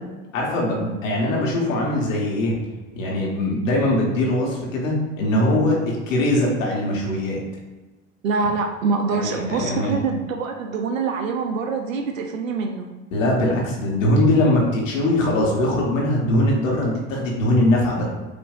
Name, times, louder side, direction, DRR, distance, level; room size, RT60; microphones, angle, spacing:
voice 1, 0.3-2.6 2.9-7.4 9.1-9.9 13.1-18.0, left 1 dB, 80° left, -2 dB, 1.2 m, -21 dB
voice 2, 8.2-12.9, right 4 dB, 85° right, 4 dB, 0.5 m, -25 dB
5.2 x 2.6 x 2.4 m, 1.2 s
hypercardioid pair, 75°, 38 cm